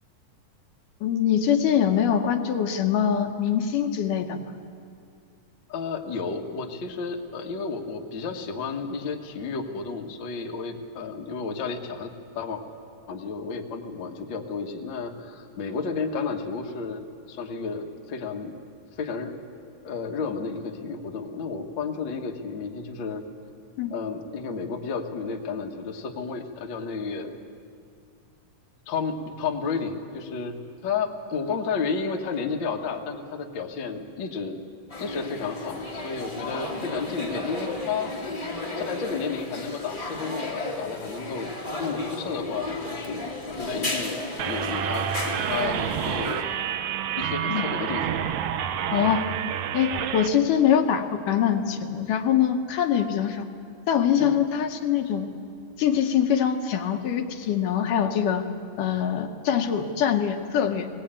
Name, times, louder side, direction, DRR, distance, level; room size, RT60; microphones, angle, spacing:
voice 1, 1.0-4.4 23.8-23.9 47.5-47.7 48.9-49.3 49.7-53.5 53.9-55.3 55.8-58.5 58.8-60.9, left 8 dB, 75° left, 5 dB, 2.5 m, -23 dB
voice 2, 5.7-12.6 13.1-18.5 19.0-19.3 19.8-23.2 23.9-27.3 28.9-30.5 30.8-34.6 35.0-38.1 38.8-41.5 41.8-44.2 44.4-46.5 47.1-48.1 48.9-49.0 54.2-54.4, left 5 dB, 50° left, 1 dB, 1.5 m, -32 dB
sound 1, 34.9-46.4, left 2 dB, 20° left, 1.0 m, -34 dB
sound 2, 44.4-50.3, right 9 dB, 70° right, 1.9 m, -28 dB
20.0 x 19.0 x 8.8 m, 2.3 s
omnidirectional pair, 4.0 m